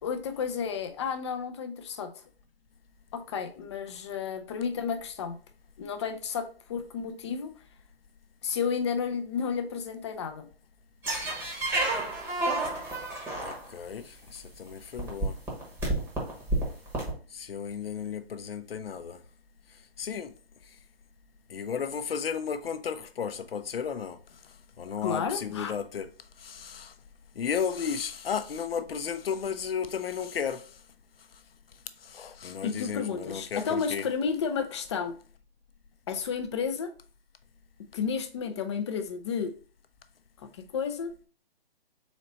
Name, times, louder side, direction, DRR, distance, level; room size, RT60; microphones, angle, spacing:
voice 1, 0.0-2.1 3.1-5.4 5.8-7.5 8.4-10.5 25.0-25.7 32.6-35.1 36.1-36.9 37.9-39.5 40.4-41.1, left 6 dB, 30° left, 0.5 m, -32 dB
sound 1, 11.0-13.9 14.7-14.8 15.0-17.1, right 2 dB, 10° right, 1.0 m, -30 dB
voice 2, 13.4-15.4 17.3-19.2 20.0-20.3 21.5-24.2 24.8-26.1 26.4-26.9 27.3-30.7 32.0-34.1, left 7 dB, 65° left, 0.7 m, -34 dB
4.0 x 3.0 x 4.2 m
hypercardioid pair, 140°, 31 cm